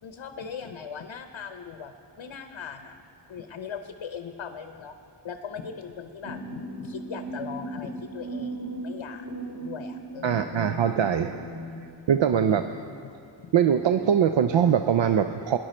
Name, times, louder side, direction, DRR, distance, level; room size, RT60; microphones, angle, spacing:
voice 1, 0.0-3.0 3.3-5.0 5.2-9.3 9.6-10.6 12.3-13.1 13.4-13.5, left 6 dB, 75° left, 7 dB, 0.7 m, -40 dB
sound 1, 6.2-11.8, right 2 dB, 30° right, 2.5 m, -37 dB
voice 2, 10.2-11.4 12.1-12.6 13.5-15.6, right 8 dB, 70° right, 8 dB, 0.5 m, -22 dB
18.5 x 10.5 x 4.3 m, 2.5 s
wide cardioid pair, 95°, 47 cm